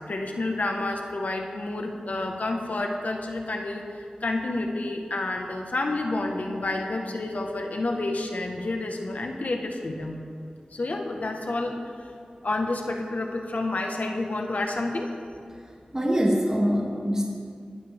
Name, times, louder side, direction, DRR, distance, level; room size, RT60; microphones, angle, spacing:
voice 1, 0.1-10.2 10.7-11.8 12.4-15.1, left 2 dB, 70° left, 2 dB, 1.5 m, -29 dB
voice 2, 15.9-17.3, equal, 20° right, -3 dB, 2.5 m, -23 dB
21.0 x 14.0 x 3.7 m, 2.3 s
wide cardioid pair, 55°, 3 cm